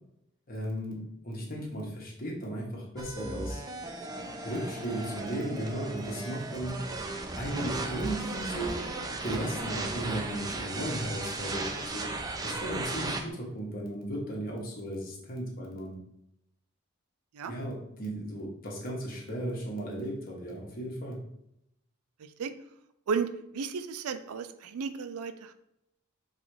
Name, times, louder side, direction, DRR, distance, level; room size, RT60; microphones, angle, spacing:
voice 1, 0.5-3.6 4.4-6.9 7.3-8.9 9.2-12.1 12.4-16.0 17.5-21.2, right 1 dB, 40° left, -2 dB, 1.1 m, -35 dB
sound 1, 3.0-13.2, right 2 dB, 15° right, 0.4 m, -36 dB
voice 2, 22.2-22.5 23.1-25.5, right 5 dB, 85° right, 10 dB, 0.4 m, -34 dB
3.9 x 2.4 x 4.6 m, 0.80 s
head